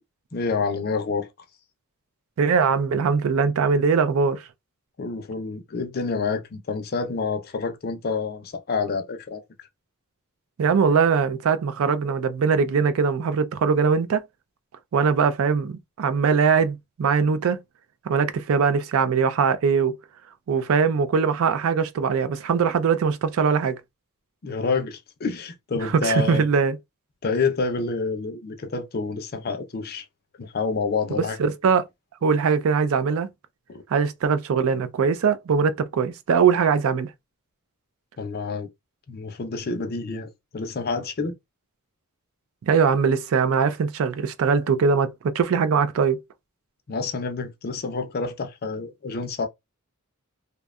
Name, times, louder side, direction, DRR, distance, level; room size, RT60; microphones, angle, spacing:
voice 1, 0.3-1.3 5.0-9.4 24.4-26.5 27.2-30.1 30.4-31.4 33.7-33.8 38.2-38.7 39.1-41.3 46.9-49.5, left 4 dB, 45° left, 0.5 m, -28 dB
voice 2, 2.4-4.4 10.6-14.2 14.9-17.6 18.1-20.0 20.5-23.8 25.8-26.8 31.2-31.9 32.2-33.3 33.9-37.1 42.7-46.2, right 5 dB, 65° right, 0.4 m, -21 dB
2.6 x 2.2 x 2.3 m
head